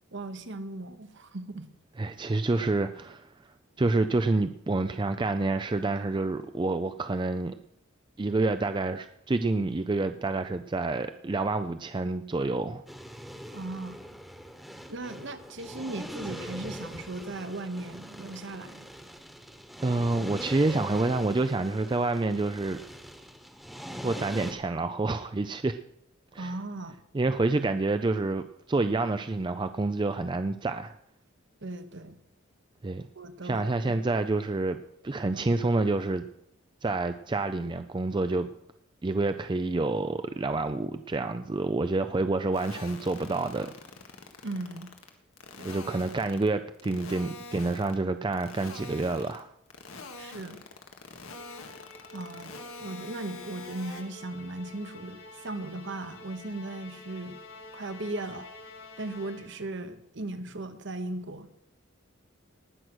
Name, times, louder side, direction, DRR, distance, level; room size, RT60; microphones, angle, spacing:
voice 1, 0.1-1.7 13.5-14.0 14.9-18.9 26.4-26.9 31.6-32.2 33.1-33.6 44.4-44.9 45.6-45.7 50.2-50.6 52.1-52.5 52.8-57.4 57.7-58.5 59.0-61.5, right 2 dB, 55° right, 10 dB, 1.1 m, -37 dB
voice 2, 2.0-3.3 3.8-7.5 8.2-12.8 19.8-22.8 24.0-25.8 26.3-26.5 27.1-30.9 32.8-33.1 33.4-34.8 35.0-36.2 36.8-38.5 39.0-43.7 45.6-49.5, right 2 dB, 20° right, 9 dB, 0.4 m, -28 dB
sound 1, 12.9-24.5, equal, ahead, 1.2 m, -42 dB
sound 2, 42.5-45.1 45.4-46.5 46.7-47.9 48.3-49.4 49.7-54.0, left 3 dB, 80° left, 1.7 m, -44 dB
Musical instrument, 51.2-59.8, left 3 dB, 65° left, 2.6 m, -48 dB
19.0 x 6.4 x 6.2 m, 0.77 s
head